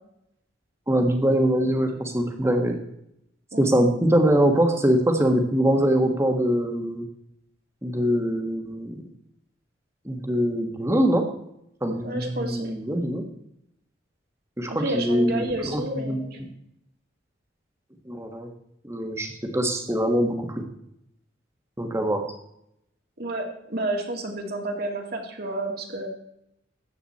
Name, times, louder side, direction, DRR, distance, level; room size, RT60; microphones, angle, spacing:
voice 1, 0.9-2.8 3.6-7.0 7.8-9.0 10.0-11.2 11.8-13.2 14.6-16.5 18.1-18.5 18.8-20.6 21.8-22.3, right 1 dB, 15° right, 4 dB, 1.5 m, -23 dB
voice 2, 12.0-12.7 14.7-16.4 23.2-26.1, right 1 dB, 50° right, 1 dB, 2.2 m, -30 dB
14.0 x 9.1 x 4.3 m, 0.77 s
head